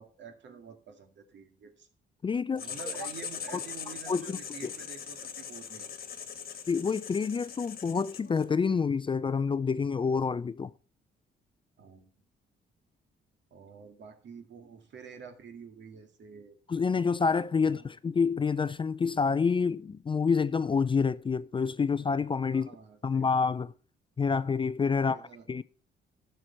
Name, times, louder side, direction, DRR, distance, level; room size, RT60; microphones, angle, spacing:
voice 1, 0.0-1.9 2.5-5.9 11.8-12.1 13.5-16.6 17.7-17.9 22.5-23.3 25.1-25.5, right 6 dB, 65° right, 2.0 m, -48 dB
voice 2, 2.2-2.6 4.1-4.7 6.7-10.7 16.7-22.7 23.0-23.7 24.2-25.2 25.5-25.6, left 5 dB, 25° left, 0.4 m, -28 dB
Writing, 2.6-8.5, left 7 dB, 50° left, 1.4 m, -41 dB
12.5 x 6.6 x 4.3 m
cardioid pair, 90°, 20 cm